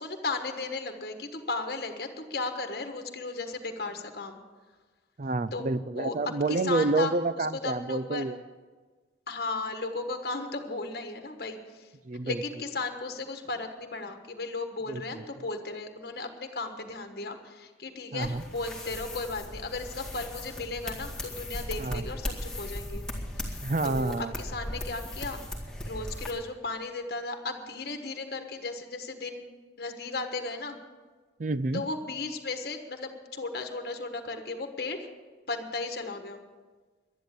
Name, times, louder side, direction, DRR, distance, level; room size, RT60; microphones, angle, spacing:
voice 1, 0.0-4.4 5.5-5.6 6.0-6.1 6.5-8.2 9.3-11.9 12.2-23.0 23.4-25.4 25.8-29.4 29.8-30.8 31.7-35.0 35.5-36.4, left 3 dB, 55° left, 5 dB, 1.4 m, -35 dB
voice 2, 5.2-8.4 12.0-12.4 14.9-15.2 18.1-18.4 21.8-22.0 23.6-24.3 31.4-31.8, right 3 dB, 45° right, 16 dB, 0.4 m, -29 dB
sound 1, 18.2-26.3, left 1 dB, 5° left, 2.0 m, -38 dB
11.5 x 10.5 x 8.4 m, 1.4 s
head